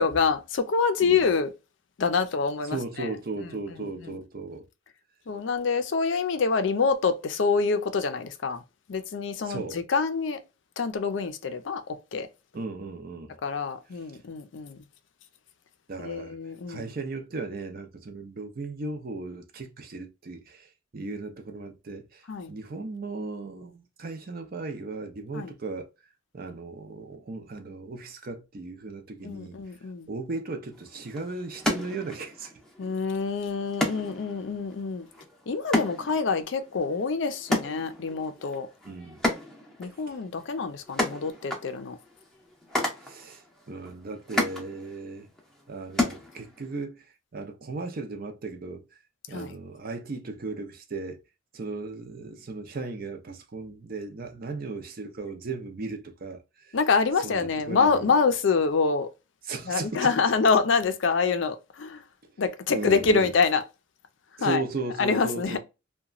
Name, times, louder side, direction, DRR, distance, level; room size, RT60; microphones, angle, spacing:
voice 1, 0.0-1.5 2.0-3.1 3.8-4.1 5.3-8.6 8.9-10.4 10.8-11.8 12.1-12.3 13.4-14.8 16.0-16.9 22.3-22.5 25.3-25.5 29.2-30.1 32.8-35.1 35.5-38.7 39.8-42.0 49.3-49.6 56.7-59.1 59.7-62.0 62.4-63.6 64.4-64.6 65.0-65.6, left 5 dB, 70° left, 0.5 m, -26 dB
voice 2, 2.6-4.7 9.4-9.8 12.5-13.3 15.9-16.4 16.7-25.9 26.3-29.6 30.1-32.5 38.8-39.2 39.8-40.2 43.0-45.3 45.7-48.9 49.3-51.2 51.5-56.8 57.2-58.1 59.4-60.1 62.7-63.3 64.4-65.6, right 3 dB, 50° right, 0.5 m, -36 dB
sound 1, 30.7-46.8, left 1 dB, 5° left, 0.6 m, -34 dB
2.9 x 2.2 x 2.4 m
head